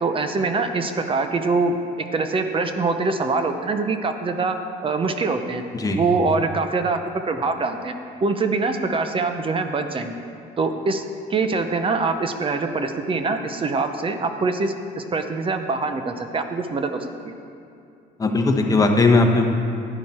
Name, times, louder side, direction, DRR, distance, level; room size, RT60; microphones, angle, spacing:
voice 1, 0.0-1.8 2.1-4.6 4.8-5.6 5.9-7.9 8.2-10.1 10.6-11.0 11.3-17.3, right 3 dB, 30° right, 7 dB, 0.7 m, -24 dB
voice 2, 18.2-19.5, left 3 dB, 20° left, 2 dB, 1.2 m, -18 dB
11.5 x 10.0 x 4.4 m, 2.5 s
cardioid pair, 110°, 17 cm